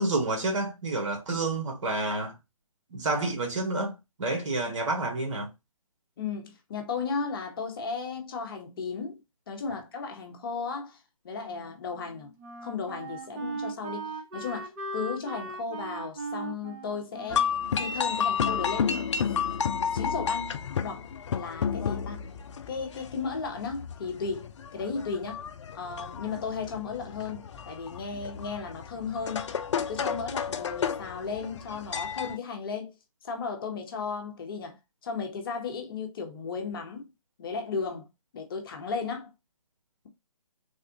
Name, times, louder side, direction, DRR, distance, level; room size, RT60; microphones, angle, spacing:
voice 1, 0.0-2.4 2.9-5.5, right 2 dB, 55° right, 1.4 m, -29 dB
voice 2, 6.2-9.2 9.5-12.3 12.6-17.5 17.8-19.4 19.8-20.5 20.8-21.0 21.3-22.2 22.7-25.4 25.7-32.9 33.2-37.1 37.4-38.1 38.3-39.3, left 5 dB, 40° left, 0.9 m, -35 dB
Wind instrument woodwind instrument, 11.4-18.7, right 3 dB, 30° right, 0.9 m, -39 dB
sound 1, 17.3-32.4, left 7 dB, 55° left, 0.4 m, -31 dB
3.4 x 2.4 x 2.8 m
figure-of-eight pair, 145°, 18 cm